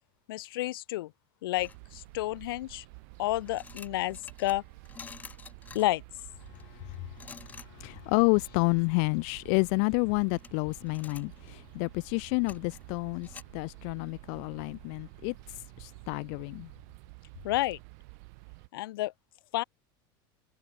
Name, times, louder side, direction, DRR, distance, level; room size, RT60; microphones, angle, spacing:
voice 1, 0.3-1.1 1.4-2.8 3.2-4.6 5.7-6.0 17.4-17.8 18.7-19.1 19.5-19.6, left 17 dB, 80° left, 1.1 m, -30 dB
sound 1, 1.6-2.4 3.1-13.4, left 5 dB, 15° left, 3.1 m, -51 dB
sound 2, 1.6-18.7, right 32 dB, 50° right, 3.4 m, -50 dB
voice 2, 7.8-13.3 13.5-15.3 15.8-16.7, left 40 dB or more, 45° left, 0.4 m, -29 dB
supercardioid pair, 170°, 12 cm